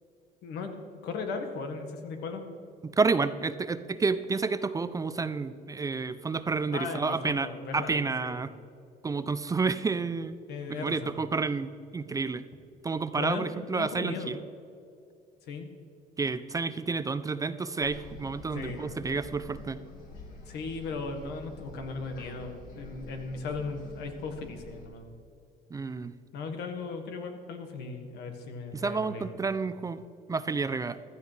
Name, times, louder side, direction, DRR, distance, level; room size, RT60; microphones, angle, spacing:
voice 1, 0.4-2.4 6.7-8.5 10.5-11.2 13.1-14.4 15.5-15.7 18.5-19.0 20.5-25.1 26.3-29.4, left 4 dB, 80° left, 5 dB, 1.6 m, -37 dB
voice 2, 2.8-7.5 7.7-8.5 9.0-10.4 10.7-12.4 12.8-14.4 16.2-19.8 25.7-26.1 28.7-31.0, right 4 dB, 20° right, 13 dB, 0.4 m, -30 dB
sound 1, 17.8-24.9, left 3 dB, 55° left, 2.3 m, -47 dB
15.0 x 13.0 x 3.3 m, 2.6 s
cardioid pair, 110°, 17 cm